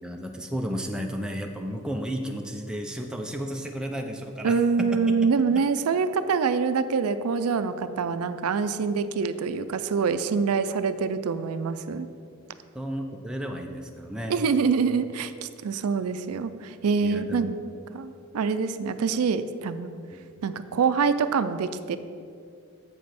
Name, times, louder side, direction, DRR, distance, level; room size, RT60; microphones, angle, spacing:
voice 1, 0.0-4.9 12.7-14.4 17.0-17.5, equal, 5° right, 2 dB, 0.5 m, -33 dB
voice 2, 4.4-12.1 14.3-17.6 17.9-19.9 20.4-22.0, right 5 dB, 85° right, 12 dB, 0.4 m, -25 dB
7.8 x 5.3 x 5.8 m, 2.4 s
head